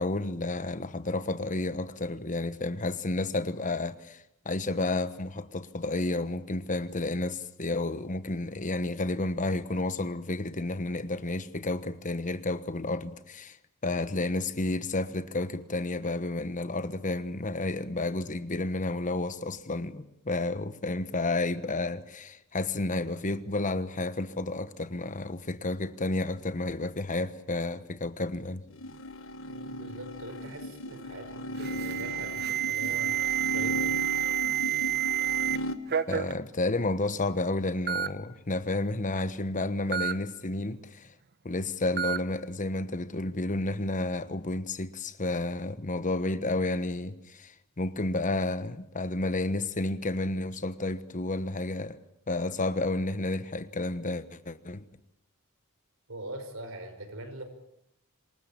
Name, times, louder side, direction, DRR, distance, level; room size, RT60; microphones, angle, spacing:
voice 1, 0.0-13.6 13.8-28.6 36.1-41.1 41.4-52.0 52.3-54.8, left 2 dB, 35° left, 1.2 m, -31 dB
sound 1, 28.7-35.8, left 1 dB, 65° left, 1.5 m, -36 dB
voice 2, 29.5-34.1 56.1-57.4, right 1 dB, 65° right, 5.5 m, -42 dB
Alarm, 31.6-35.6 35.9-36.3 37.2-37.3 37.9-38.1 39.9-40.1 42.0-42.2, right 11 dB, 50° right, 1.0 m, -29 dB
26.5 x 20.0 x 8.7 m
head